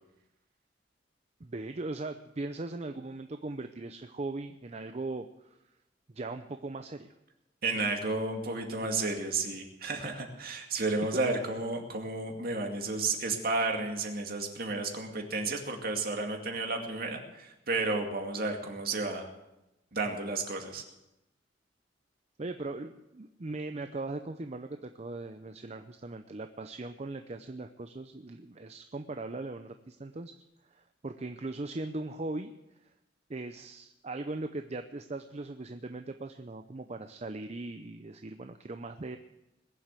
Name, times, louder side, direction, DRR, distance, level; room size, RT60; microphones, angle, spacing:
voice 1, 1.4-5.6 6.1-7.1 11.1-11.2 22.4-30.3 30.7-32.5 33.3-39.2, right 2 dB, 35° right, 8 dB, 0.6 m, -39 dB
voice 2, 7.6-19.3 19.9-20.8, right 3 dB, 55° right, 3 dB, 2.3 m, -32 dB
21.0 x 7.5 x 8.3 m, 0.94 s
head